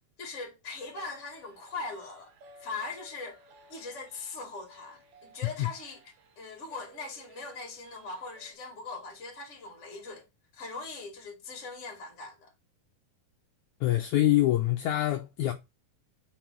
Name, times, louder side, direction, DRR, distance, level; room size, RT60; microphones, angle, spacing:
voice 1, 0.2-2.3 2.6-3.4 3.7-6.0 6.3-10.3 10.5-12.5, left 3 dB, 30° left, 1.6 m, -40 dB
sound 1, 0.8-8.5, right 1 dB, 65° right, 1.5 m, -57 dB
voice 2, 13.8-15.5, left 14 dB, 85° left, 1.7 m, -25 dB
5.5 x 4.3 x 6.0 m
omnidirectional pair, 4.2 m